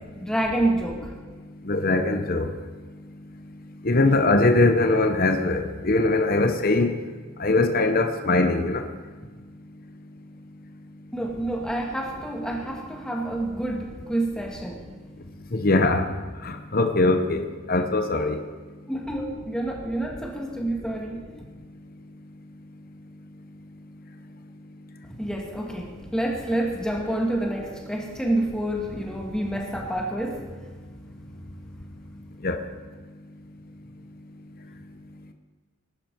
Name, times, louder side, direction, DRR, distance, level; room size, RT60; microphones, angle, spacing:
voice 1, 0.2-1.1 11.1-14.9 18.9-21.2 25.2-30.6, right 1 dB, 5° left, 0 dB, 1.6 m, -28 dB
voice 2, 1.7-2.5 3.8-6.9 7.4-8.8 15.5-16.1 16.4-18.4 32.4-32.6, left 2 dB, 45° left, 6 dB, 0.9 m, -21 dB
19.5 x 11.0 x 4.6 m, 1.4 s
head